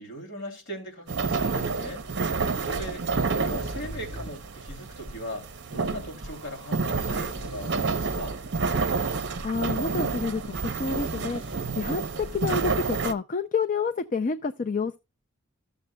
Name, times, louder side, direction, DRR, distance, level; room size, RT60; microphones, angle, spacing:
voice 1, 0.0-8.4, equal, 55° left, 2.8 m, -39 dB
sound 1, 1.1-13.1, right 4 dB, 55° right, 0.7 m, -29 dB
sound 2, 2.1-12.5, equal, 5° right, 2.8 m, -43 dB
voice 2, 9.4-10.5 10.8-11.4 11.8-15.0, left 5 dB, 35° left, 0.4 m, -28 dB
14.5 x 6.9 x 2.2 m
head